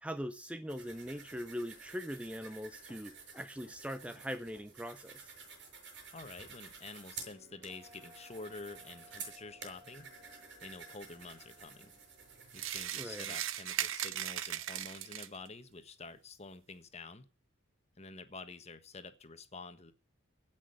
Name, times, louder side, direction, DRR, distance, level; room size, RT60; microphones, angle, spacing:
voice 1, 0.0-5.3 13.0-13.3, equal, 5° right, 0.7 m, -41 dB
sound 1, 0.7-12.9, right 5 dB, 60° right, 6.3 m, -51 dB
voice 2, 6.1-10.1 10.6-11.9 12.5-17.3 18.0-19.9, left 3 dB, 35° left, 1.4 m, -48 dB
sound 2, 7.2-13.6, equal, 40° right, 5.2 m, -61 dB
sound 3, 12.5-15.5, right 11 dB, 85° right, 0.9 m, -38 dB
16.5 x 6.3 x 9.2 m
head